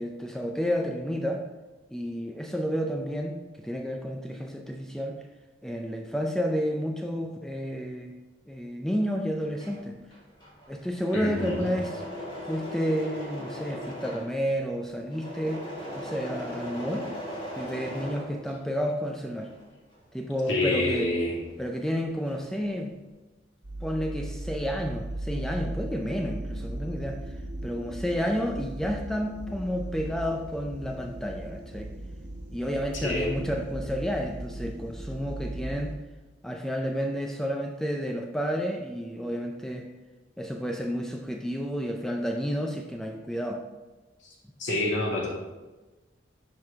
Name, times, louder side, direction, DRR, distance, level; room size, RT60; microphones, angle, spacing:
voice 1, 0.0-1.4 1.9-5.2 5.6-8.1 8.5-9.9 10.7-12.0 12.4-15.6 16.0-17.1 17.6-19.5 20.1-21.1 21.6-23.0 23.8-27.2 27.6-31.9 32.5-35.9 36.4-39.9 40.4-43.6, equal, 5° left, 2 dB, 0.4 m, -31 dB
Engine / Mechanisms, 9.3-18.9 19.3-21.6 21.9-22.6, equal, 25° left, 2.0 m, -39 dB
voice 2, 11.1-11.6 20.5-21.4 32.9-33.4 44.2-44.3 44.6-45.3, left 2 dB, 75° left, -4 dB, 2.4 m, -27 dB
sound 1, 23.6-35.9, right 1 dB, 85° right, 1.2 m, -37 dB
10.5 x 4.7 x 3.6 m, 1.2 s
head